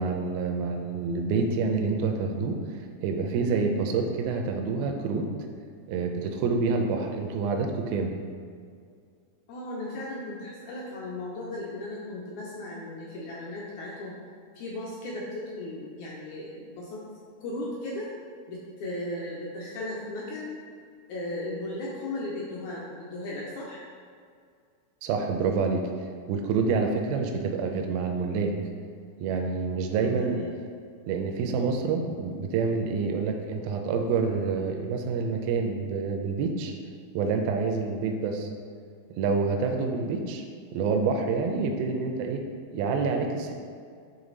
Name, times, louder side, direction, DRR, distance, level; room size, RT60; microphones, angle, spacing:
voice 1, 0.0-5.3 5.9-8.1 25.0-25.8 26.3-28.5 29.2-30.4 31.1-36.7 37.1-38.5 39.1-40.4 40.7-42.4 42.7-43.5, right 4 dB, 85° right, 3 dB, 2.3 m, -27 dB
voice 2, 9.5-14.2 14.5-17.0 17.4-18.1 18.5-20.5 21.1-23.8 29.9-30.6 40.0-40.2, left 1 dB, 80° left, -4 dB, 1.7 m, -36 dB
8.9 x 3.3 x 3.9 m, 2.2 s
omnidirectional pair, 4.4 m